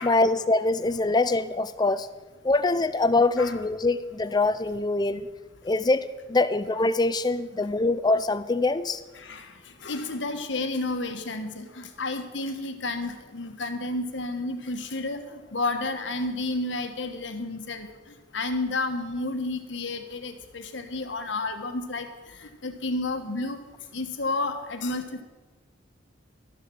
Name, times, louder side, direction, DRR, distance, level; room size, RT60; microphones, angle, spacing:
voice 1, 0.0-2.1 2.4-5.3 5.6-9.0, left 2 dB, 20° left, 13 dB, 0.5 m, -24 dB
voice 2, 9.1-9.5 9.8-17.9 18.3-22.1 22.4-23.6 23.9-25.2, left 2 dB, 70° left, 7 dB, 1.3 m, -31 dB
12.5 x 7.0 x 7.6 m, 1.3 s
head